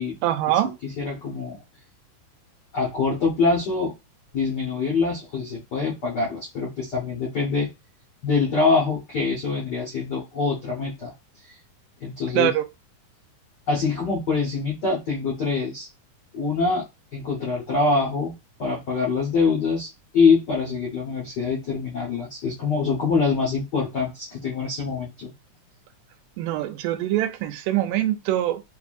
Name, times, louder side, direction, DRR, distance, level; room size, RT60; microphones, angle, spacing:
voice 1, 0.2-0.8 12.3-12.6 26.4-28.6, right 13 dB, 85° right, 2.2 m, -23 dB
voice 2, 0.8-1.6 2.7-3.9 4.3-7.7 8.2-11.1 12.0-12.5 13.7-15.9 16.3-16.8 17.1-19.9 20.1-25.3, left 4 dB, 85° left, 0.9 m, -24 dB
5.7 x 2.6 x 2.5 m
omnidirectional pair, 3.7 m